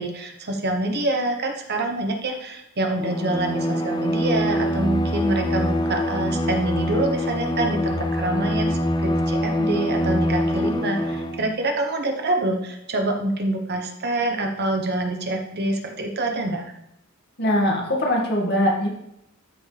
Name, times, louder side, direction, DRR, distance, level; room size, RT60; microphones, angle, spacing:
voice 1, 0.0-16.7, right 2 dB, 50° right, 3 dB, 1.2 m, -26 dB
Bowed string instrument, 3.0-11.5, left 1 dB, 20° left, 0.5 m, -24 dB
voice 2, 17.4-18.9, equal, 50° left, -1 dB, 2.1 m, -21 dB
13.0 x 6.2 x 3.4 m, 0.79 s
head